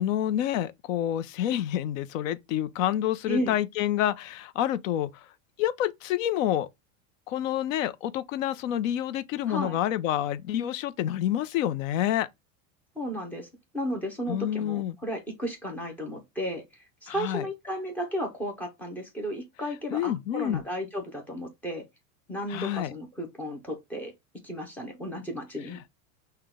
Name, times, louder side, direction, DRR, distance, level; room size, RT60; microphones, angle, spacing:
voice 1, 0.0-5.3 5.6-6.7 7.3-12.3 14.3-15.0 17.1-17.5 19.9-20.6 22.5-22.9, left 11 dB, 65° left, 0.6 m, -28 dB
voice 2, 3.3-3.6 9.5-9.8 13.0-13.5 13.7-21.8 22.3-24.1 24.4-25.8, equal, 5° left, 0.4 m, -34 dB
5.7 x 2.2 x 3.5 m
supercardioid pair, 160°, 42 cm